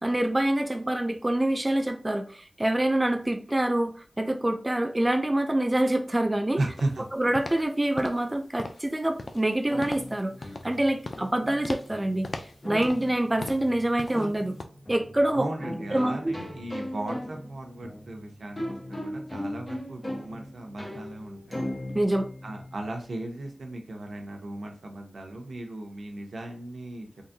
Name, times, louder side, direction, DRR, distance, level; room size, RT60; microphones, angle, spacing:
voice 1, 0.0-6.6 7.1-10.3 10.6-12.3 12.6-14.6 14.9-15.5 15.9-16.3 21.9-22.3, right 1 dB, 20° right, 5 dB, 0.4 m, -26 dB
voice 2, 6.6-7.0 15.3-21.6 22.4-27.1, right 2 dB, 90° right, 2 dB, 0.8 m, -36 dB
sound 1, 6.7-7.0 7.3-7.7 8.0-8.3 8.6-8.9 9.2-9.5 9.8-10.1 10.4-10.8 11.0-11.3 11.6-11.9 12.2-13.1 13.4-13.7 14.0-14.3 14.6-14.7, left 2 dB, 55° left, 0.4 m, -38 dB
sound 2, 9.7-23.3, left 1 dB, 30° left, 1.1 m, -39 dB
3.8 x 2.6 x 2.6 m, 0.41 s
wide cardioid pair, 85°, 0 cm